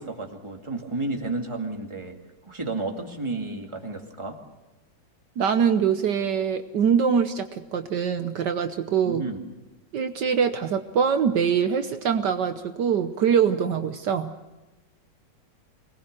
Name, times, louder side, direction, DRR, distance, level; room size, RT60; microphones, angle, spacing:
voice 1, 0.0-2.2 2.5-4.4 9.0-9.4, right 2 dB, 15° right, 2 dB, 2.3 m, -32 dB
voice 2, 5.4-9.2 9.9-14.3, right 7 dB, 70° right, 8 dB, 1.5 m, -23 dB
25.0 x 19.5 x 6.7 m, 1.2 s
omnidirectional pair, 2.0 m